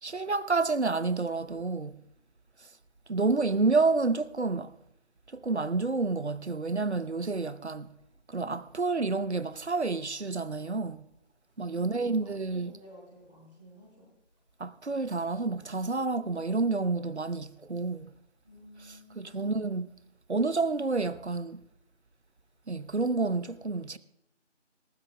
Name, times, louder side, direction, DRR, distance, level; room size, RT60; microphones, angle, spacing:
voice 1, 0.0-2.0 3.1-4.7 5.3-7.9 8.3-11.0 11.6-12.7 14.6-18.1 18.8-19.9 20.3-21.6 22.7-24.0, right 3 dB, 65° right, 0.8 m, -29 dB
voice 2, 11.7-14.1 18.4-19.6, left 1 dB, 10° left, 3.0 m, -53 dB
19.0 x 14.5 x 2.3 m
figure-of-eight pair, 175°, 36 cm